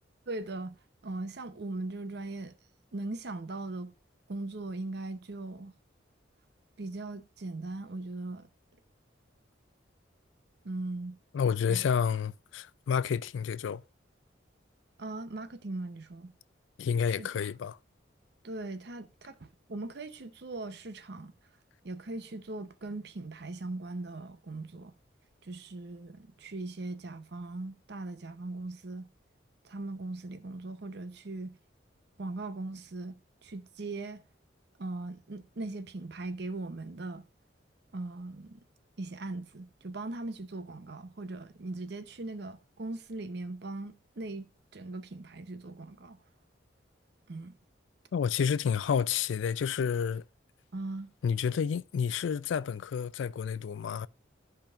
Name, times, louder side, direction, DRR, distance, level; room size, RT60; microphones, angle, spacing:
voice 1, 0.3-0.8 1.0-2.6 2.9-3.9 4.3-5.7 6.8-8.5 10.6-11.2 11.7-11.9 15.0-16.3 17.2-17.3 18.4-21.3 21.8-24.9 25.4-29.1 29.6-31.6 32.2-34.2 34.8-37.3 37.9-38.6 39.0-44.5 44.7-46.2 47.3-47.6 50.7-51.1, right 2 dB, 60° right, 0.7 m, -39 dB
voice 2, 11.3-13.8 16.8-17.8 48.1-50.2 51.2-54.1, left 7 dB, 75° left, 0.3 m, -30 dB
13.0 x 5.2 x 2.4 m
head